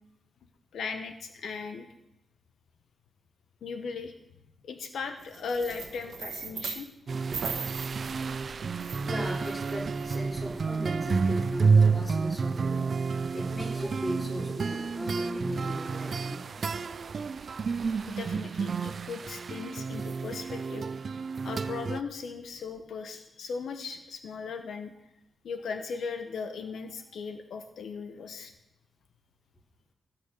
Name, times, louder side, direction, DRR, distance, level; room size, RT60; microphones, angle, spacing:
voice 1, 0.7-1.9 3.6-4.1 4.6-6.9 17.9-20.9 21.4-24.9 25.4-28.5, left 5 dB, 85° left, 7 dB, 0.9 m, -37 dB
sound 1, 5.2-6.9 7.3-10.2, right 6 dB, 65° right, 1.2 m, -39 dB
sound 2, 7.1-22.0, right 5 dB, 45° right, 0.4 m, -30 dB
voice 2, 9.0-16.4, equal, 10° left, -3 dB, 3.4 m, -37 dB
16.5 x 5.6 x 6.7 m, 0.89 s
wide cardioid pair, 145°, 0 cm